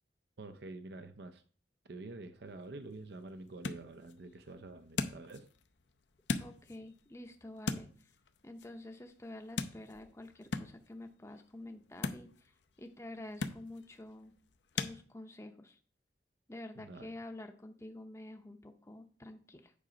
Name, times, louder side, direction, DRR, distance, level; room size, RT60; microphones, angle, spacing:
voice 1, 0.4-1.4 1.8-5.5 16.8-17.1, right 2 dB, 65° right, 8 dB, 0.6 m, -47 dB
sound 1, 2.4-15.0, left 4 dB, 90° left, 0.6 m, -43 dB
voice 2, 6.4-8.1 8.4-14.3 14.7-15.8 16.5-19.7, left 1 dB, 15° left, 5 dB, 0.6 m, -48 dB
8.5 x 4.9 x 5.0 m, 0.44 s
head